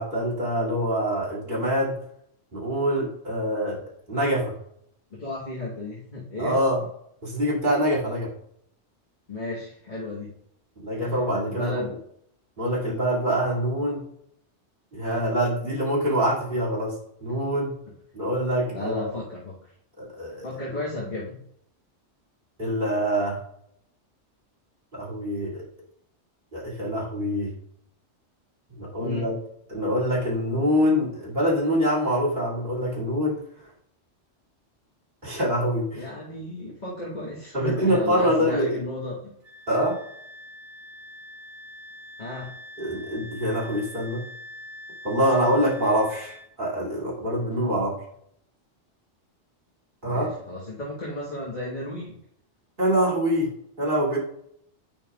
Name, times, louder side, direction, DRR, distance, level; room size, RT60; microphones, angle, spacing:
voice 1, 0.0-2.0 2.5-3.8 4.1-4.5 6.4-6.8 7.2-8.3 10.8-11.9 12.6-14.0 14.9-17.0 17.2-17.7 18.1-19.2 20.0-20.4 22.6-23.4 24.9-25.6 26.5-27.5 28.7-29.3 29.7-33.4 35.2-36.0 37.5-38.8 39.7-40.0 42.8-44.2 45.0-47.9 50.0-50.3 52.8-53.5 53.8-54.2, equal, 45° right, -5 dB, 2.7 m, -25 dB
voice 2, 5.1-6.6 9.3-10.3 10.9-12.0 18.7-19.7 20.4-21.4 29.0-29.3 35.9-39.3 42.2-42.5 47.5-47.8 50.0-52.2, left 1 dB, 40° left, -6 dB, 1.5 m, -34 dB
Wind instrument woodwind instrument, 39.4-46.5, left 1 dB, 85° right, 1.8 m, -44 dB
9.0 x 5.7 x 2.3 m, 0.69 s
omnidirectional pair, 1.2 m